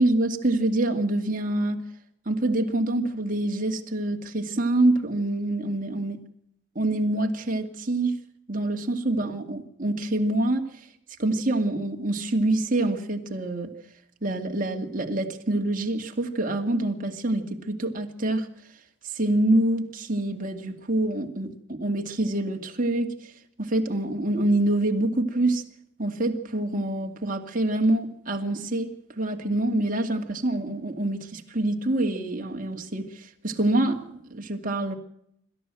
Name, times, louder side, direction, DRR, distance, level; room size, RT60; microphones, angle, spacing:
voice 1, 0.0-1.8 2.3-6.2 6.8-8.1 8.5-10.6 11.2-13.7 14.2-18.5 19.0-23.3 23.6-25.6 26.0-28.9 29.2-34.9, right 1 dB, 40° right, 2.4 m, -26 dB
26.0 x 13.5 x 7.7 m
head